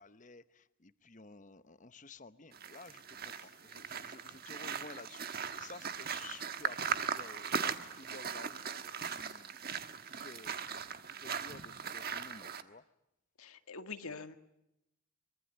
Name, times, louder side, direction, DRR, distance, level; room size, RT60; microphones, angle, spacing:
voice 1, 0.0-5.3 5.6-12.8, left 3 dB, 35° left, 13 dB, 1.0 m, -53 dB
sound 1, 2.5-12.6, right 6 dB, 45° right, 1.4 m, -39 dB
voice 2, 13.4-14.3, left 4 dB, 80° left, 8 dB, 1.8 m, -45 dB
24.0 x 23.5 x 9.2 m, 0.84 s
head